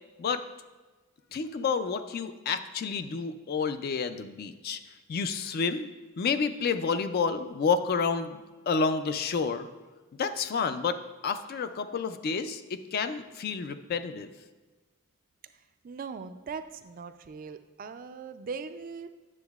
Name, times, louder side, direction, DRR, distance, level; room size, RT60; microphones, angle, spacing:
voice 1, 1.3-4.8 5.1-5.9 6.2-8.4 8.7-9.7 10.2-11.0 11.2-14.3, left 5 dB, 45° left, 10 dB, 0.3 m, -29 dB
voice 2, 15.8-19.1, right 5 dB, 40° right, 10 dB, 0.3 m, -40 dB
9.7 x 7.0 x 2.3 m, 1.2 s
head